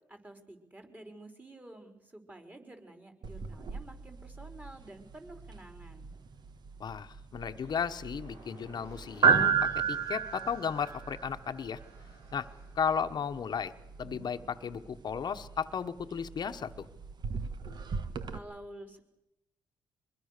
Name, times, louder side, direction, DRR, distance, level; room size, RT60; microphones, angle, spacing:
voice 1, 0.1-6.1 18.3-19.0, right 1 dB, 20° right, 5 dB, 4.5 m, -50 dB
sound 1, 3.2-18.4, right 6 dB, 55° right, 1.5 m, -34 dB
voice 2, 6.8-11.8 12.3-12.5 12.7-13.7 14.0-16.9, left 7 dB, 55° left, 8 dB, 1.1 m, -34 dB
sound 2, 7.5-17.4, right 2 dB, 75° right, 6.8 m, -58 dB
24.5 x 21.0 x 6.7 m, 0.91 s
supercardioid pair, 65°, 9 cm